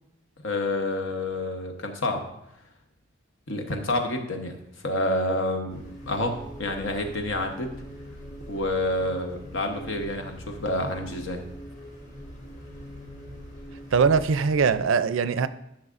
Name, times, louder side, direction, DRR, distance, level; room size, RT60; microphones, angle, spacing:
voice 1, 0.4-2.3 3.5-4.6 4.8-7.7 8.5-11.4, left 1 dB, 75° left, 4 dB, 1.1 m, -28 dB
sound 1, 5.7-14.8, equal, 35° left, 1.7 m, -42 dB
voice 2, 13.9-15.5, right 5 dB, 75° right, 14 dB, 0.4 m, -21 dB
12.0 x 6.2 x 2.5 m, 0.82 s
head